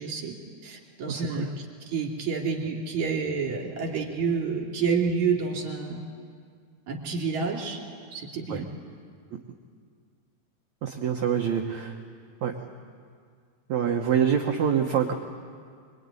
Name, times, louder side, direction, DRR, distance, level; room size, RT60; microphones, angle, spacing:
voice 1, 0.0-6.0 6.9-7.8 8.1-8.7, right 5 dB, 45° right, 0 dB, 3.7 m, -29 dB
voice 2, 1.1-1.5 8.5-8.6 10.8-12.0 12.4-12.5 13.7-15.1, right 8 dB, 70° right, 2 dB, 1.7 m, -25 dB
25.0 x 23.5 x 9.7 m, 2.1 s
omnidirectional pair, 5.0 m